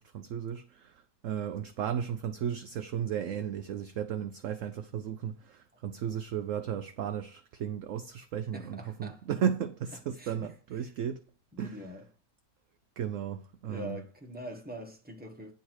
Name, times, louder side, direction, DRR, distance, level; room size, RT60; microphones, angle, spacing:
voice 1, 0.0-11.3 11.6-11.8 13.0-14.0, right 8 dB, 65° right, 0.8 m, -35 dB
voice 2, 8.5-9.2 10.2-10.5 10.8-10.9 11.5-12.1 13.6-15.5, equal, 5° right, 1.5 m, -43 dB
10.0 x 4.0 x 6.3 m
omnidirectional pair, 1.9 m